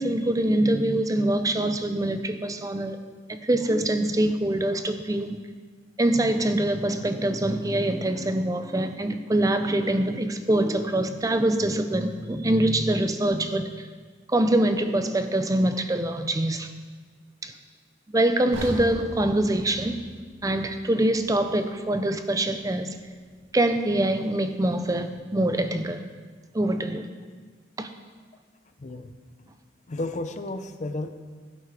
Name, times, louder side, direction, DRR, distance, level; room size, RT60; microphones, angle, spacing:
voice 1, 0.0-3.0 3.3-5.4 6.0-13.9 14.3-16.7 17.4-17.5 18.1-20.0 20.4-22.9 23.5-26.0 26.5-27.1 27.8-27.9, right 1 dB, 20° right, 8 dB, 0.6 m, -24 dB
sound 1, 18.5-22.6 22.9-23.1 23.7-23.8, right 1 dB, 90° right, 2.2 m, -40 dB
voice 2, 28.8-29.1 29.9-31.1, left 2 dB, 40° left, 8 dB, 0.5 m, -32 dB
16.0 x 8.4 x 3.4 m, 1.5 s
head